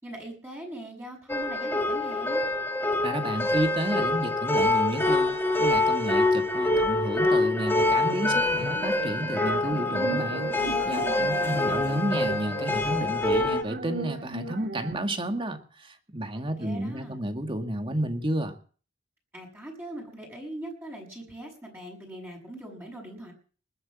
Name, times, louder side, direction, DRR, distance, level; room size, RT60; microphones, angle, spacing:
voice 1, 0.0-2.4 11.0-12.0 16.3-17.2 19.3-23.3, right 1 dB, 15° right, -2 dB, 6.6 m, -41 dB
sound 1, 1.3-13.6, left 2 dB, 10° left, 1.9 m, -25 dB
voice 2, 3.0-18.6, right 1 dB, 30° right, 6 dB, 2.0 m, -31 dB
sound 2, 7.8-14.9, right 3 dB, 65° right, 2.0 m, -37 dB
20.0 x 8.2 x 7.5 m, 0.42 s
head